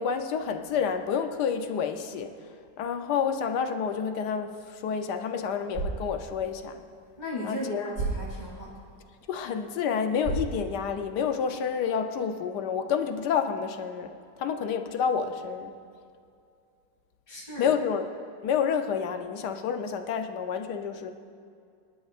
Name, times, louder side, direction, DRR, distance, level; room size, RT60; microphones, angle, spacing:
voice 1, 0.0-2.3 2.8-6.8 7.4-8.0 9.3-14.1 14.4-15.7 17.6-18.1 18.4-21.1, left 7 dB, 70° left, 7 dB, 1.3 m, -29 dB
sound 1, 5.5-11.6, right 3 dB, 40° right, 3.7 m, -38 dB
voice 2, 7.2-8.8 17.3-17.7, left 1 dB, 25° left, -7 dB, 3.3 m, -36 dB
25.0 x 11.5 x 2.5 m, 2.3 s
omnidirectional pair, 2.0 m